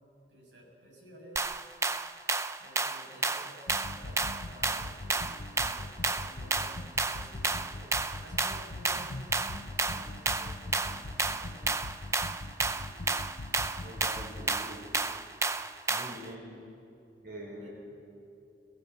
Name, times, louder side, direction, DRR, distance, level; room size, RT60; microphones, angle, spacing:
voice 1, 0.3-1.5 2.6-11.8 17.6-17.7, right 1 dB, 90° right, -2 dB, 6.8 m, -53 dB
sound 1, 1.4-16.3, right 3 dB, 15° right, 0.6 m, -32 dB
sound 2, 3.7-14.5, left 2 dB, 80° left, 0.8 m, -42 dB
voice 2, 13.8-14.9 15.9-16.5 17.2-17.7, right 1 dB, 60° right, -3 dB, 5.0 m, -44 dB
25.5 x 15.5 x 8.0 m, 2.6 s
head